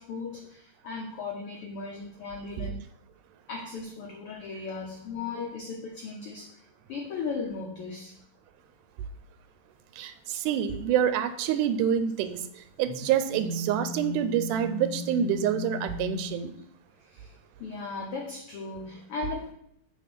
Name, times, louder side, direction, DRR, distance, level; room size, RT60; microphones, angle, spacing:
voice 1, 0.0-2.8 3.5-6.5 6.9-8.1 17.1-17.3 17.6-19.5, left 4 dB, 75° left, 1.3 m, -37 dB
voice 2, 10.0-12.4 12.8-16.5, right 9 dB, 85° right, 2.1 m, -27 dB
sound 1, 12.6-16.3, left 2 dB, 40° right, 0.9 m, -36 dB
8.4 x 3.5 x 6.0 m
omnidirectional pair, 3.6 m